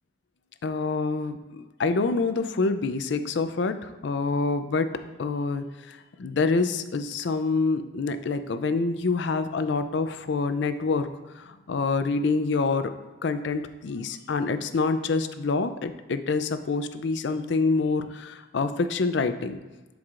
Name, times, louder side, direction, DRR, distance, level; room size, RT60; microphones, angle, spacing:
voice 1, 0.6-11.1 11.4-12.9 13.2-19.6, left 4 dB, 60° left, 10 dB, 0.4 m, -26 dB
11.0 x 4.7 x 2.5 m, 1.2 s
head